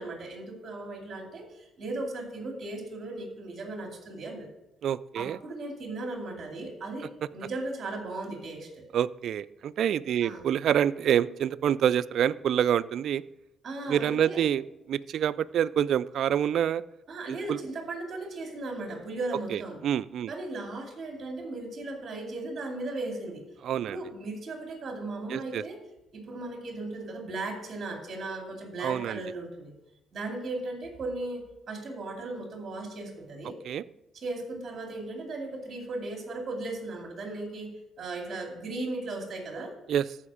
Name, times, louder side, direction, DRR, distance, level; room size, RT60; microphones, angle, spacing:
voice 1, 0.0-4.5 5.1-8.8 10.2-10.4 13.6-14.4 17.1-19.8 20.3-23.4 23.7-25.8 26.1-29.7 30.1-33.5 34.1-39.7, right 2 dB, 45° right, 2 dB, 2.5 m, -37 dB
voice 2, 4.8-5.4 8.9-13.2 13.9-16.8 17.3-17.6 19.5-20.3 23.6-24.0 25.3-25.6 28.8-29.2 33.7-33.8 39.9-40.0, right 9 dB, 70° right, 17 dB, 0.3 m, -27 dB
14.0 x 5.0 x 4.9 m, 0.89 s
cardioid pair, 95°, 0 cm